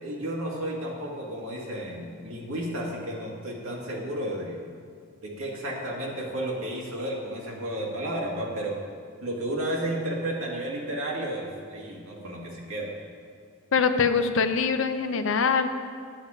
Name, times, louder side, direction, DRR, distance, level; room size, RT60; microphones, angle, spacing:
voice 1, 0.0-4.6 5.2-8.8 9.2-12.9, right 1 dB, 85° right, -2 dB, 1.9 m, -32 dB
voice 2, 13.7-15.7, left 5 dB, 70° left, 9 dB, 0.6 m, -23 dB
9.9 x 8.2 x 5.0 m, 2.2 s
head